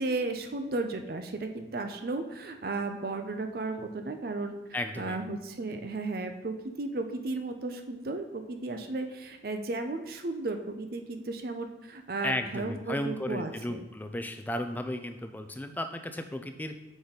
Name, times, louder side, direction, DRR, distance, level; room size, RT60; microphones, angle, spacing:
voice 1, 0.0-4.6 5.0-13.8, right 3 dB, 50° right, 6 dB, 0.5 m, -34 dB
voice 2, 4.7-5.2 12.2-16.8, left 1 dB, 10° left, 8 dB, 0.3 m, -34 dB
6.0 x 5.0 x 4.0 m, 0.95 s
head